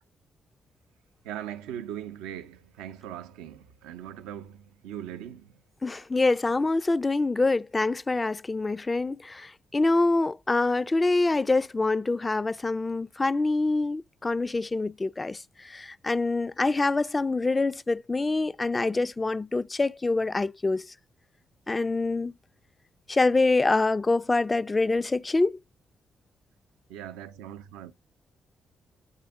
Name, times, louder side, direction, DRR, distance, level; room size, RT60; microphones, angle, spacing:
voice 1, 1.2-5.6 26.9-27.9, right 10 dB, 85° right, 0.4 m, -40 dB
voice 2, 5.8-15.4 15.6-20.9 21.7-22.3 23.1-25.6, left 3 dB, 30° left, 0.3 m, -25 dB
8.7 x 3.4 x 3.5 m
hypercardioid pair, 45°, 0 cm